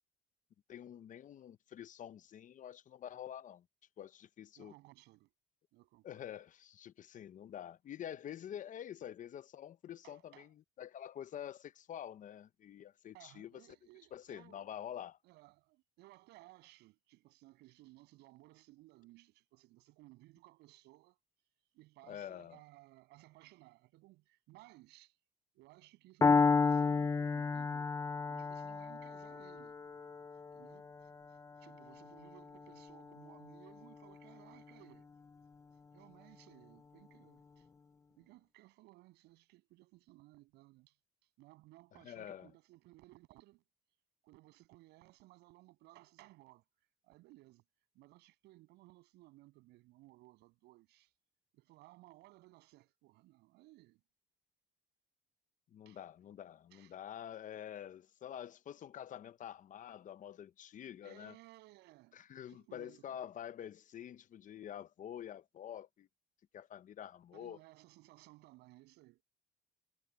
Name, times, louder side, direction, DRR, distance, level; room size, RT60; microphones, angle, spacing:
voice 1, 0.7-3.6 4.0-4.7 6.0-13.5 14.1-15.2 22.1-22.6 41.9-42.5 55.7-61.4 62.1-66.1 66.5-67.6, left 10 dB, 50° left, 0.8 m, -47 dB
voice 2, 4.6-5.3 5.7-6.2 10.0-10.5 13.1-14.7 15.2-21.2 21.7-25.2 25.5-27.9 28.3-29.8 30.5-35.1 35.9-37.7 38.2-41.0 41.4-43.6 44.2-46.6 47.0-47.6 47.9-51.1 51.5-54.0 55.9-56.0 56.7-57.0 61.0-62.2 62.5-63.2 67.3-69.2, right 19 dB, 90° right, 7.3 m, -60 dB
Piano, 26.2-34.1, left 4 dB, 20° left, 0.5 m, -33 dB
cardioid pair, 110°, 17 cm